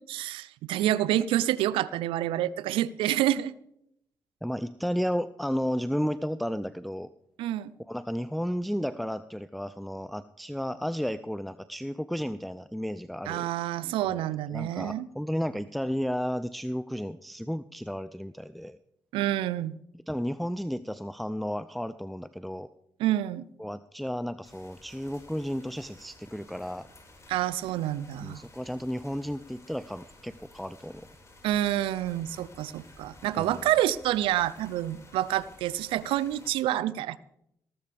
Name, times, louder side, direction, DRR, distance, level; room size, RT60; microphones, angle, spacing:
voice 1, 0.1-3.5 7.4-7.7 13.3-15.1 19.1-19.7 23.0-23.5 27.3-28.4 31.4-37.2, right 13 dB, 85° right, 19 dB, 0.4 m, -28 dB
voice 2, 4.4-7.1 7.9-13.5 14.1-14.3 14.5-18.8 20.1-22.7 23.6-26.9 28.2-31.1 33.3-33.6, equal, ahead, 13 dB, 0.5 m, -33 dB
sound 1, 24.4-36.5, left 2 dB, 35° left, 5.0 m, -54 dB
18.0 x 13.5 x 3.4 m, 0.77 s
supercardioid pair, 55°, 9 cm